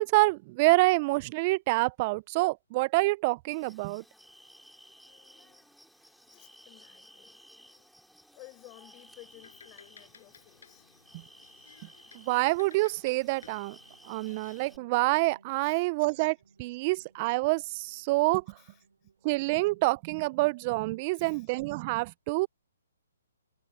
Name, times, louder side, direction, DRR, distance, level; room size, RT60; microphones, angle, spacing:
voice 1, 0.0-4.0 12.1-13.8 14.1-18.4 19.2-22.5, right 24 dB, 30° right, 0.3 m, -27 dB
sound 1, 3.5-14.8, equal, ahead, 4.5 m, -56 dB
voice 2, 5.0-7.9 8.3-10.9 15.6-15.9 18.6-19.1 21.1-21.5, left 25 dB, 25° left, 5.4 m, -56 dB
sound 2, 9.1-14.8, left 6 dB, 70° left, 7.1 m, -57 dB
sound 3, 13.2-21.0, right 4 dB, 80° right, 4.1 m, -62 dB
hypercardioid pair, 150°, 0 cm